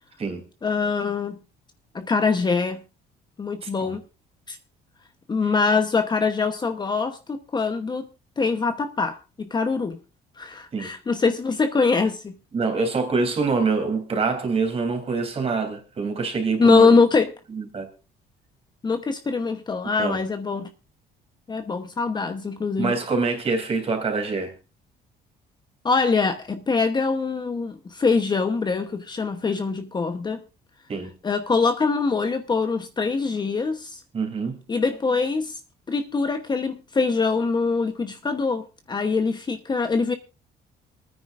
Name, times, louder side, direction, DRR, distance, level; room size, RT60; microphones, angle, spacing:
voice 1, 0.6-1.4 1.9-2.8 3.4-4.0 4.5-4.6 5.3-8.1 8.4-10.0 10.4-12.3 16.6-17.3 18.8-20.7 21.5-22.9 25.8-30.4 31.2-34.0 34.7-35.6 35.9-40.1, left 4 dB, 25° left, 1.0 m, -23 dB
voice 2, 3.6-4.0 5.4-5.5 10.7-10.9 12.5-16.9 17.5-17.9 20.0-20.2 22.8-24.5 30.9-31.1 34.1-34.6, right 4 dB, 35° right, 3.3 m, -25 dB
26.5 x 9.6 x 2.5 m
cardioid pair, 110°, 17 cm